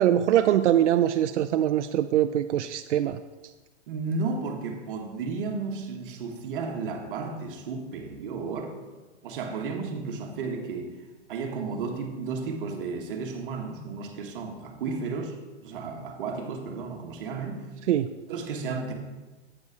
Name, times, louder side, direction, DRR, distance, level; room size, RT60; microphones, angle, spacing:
voice 1, 0.0-3.2 17.9-18.1, right 11 dB, 90° right, 9 dB, 0.5 m, -23 dB
voice 2, 3.9-8.8 9.2-10.9 11.3-17.7 18.3-18.9, right 4 dB, 50° right, 3 dB, 1.4 m, -33 dB
8.4 x 5.4 x 4.7 m, 1.2 s
hypercardioid pair, 160°, 34 cm